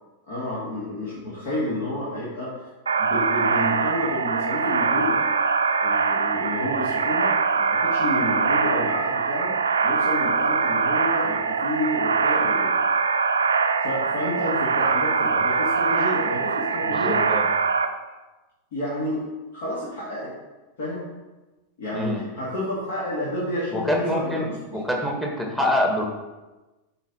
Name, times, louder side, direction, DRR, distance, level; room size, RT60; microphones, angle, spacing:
voice 1, 0.3-2.7 3.0-5.2 5.8-9.5 9.8-12.7 13.8-17.3 18.7-19.2 19.5-20.3 20.8-21.2 21.8-24.4 24.7-24.8, left 1 dB, 55° left, -8 dB, 2.5 m, -30 dB
sound 1, 2.9-17.9, right 5 dB, 70° right, 0.5 m, -23 dB
voice 2, 16.9-17.5 21.9-22.3 23.7-26.0, left 1 dB, 5° left, 1 dB, 1.5 m, -25 dB
8.8 x 4.6 x 4.3 m, 1.1 s
figure-of-eight pair, 90°, 0 cm